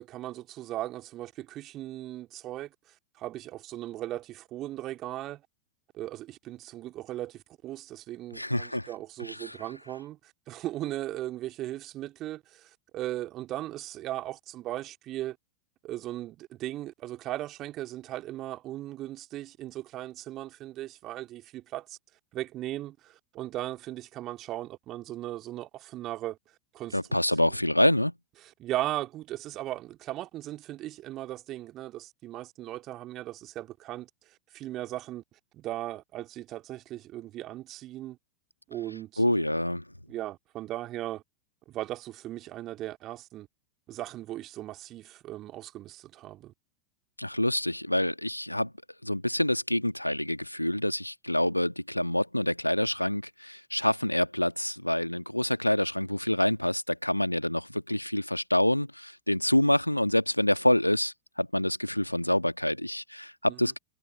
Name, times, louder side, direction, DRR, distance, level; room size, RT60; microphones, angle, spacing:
voice 1, 0.0-2.7 3.2-5.4 5.9-15.4 15.8-22.0 22.3-26.4 26.7-27.0 28.6-35.2 35.5-38.2 38.7-39.5 40.1-41.2 41.7-43.5 43.9-46.5 63.5-63.6, right 14 dB, 35° right, 2.4 m, -37 dB
voice 2, 8.3-8.9 9.2-9.6 26.9-28.1 39.2-39.9 47.2-48.7 49.0-63.8, left 1 dB, 90° left, 1.5 m, -27 dB
figure-of-eight pair, 90°, 0 cm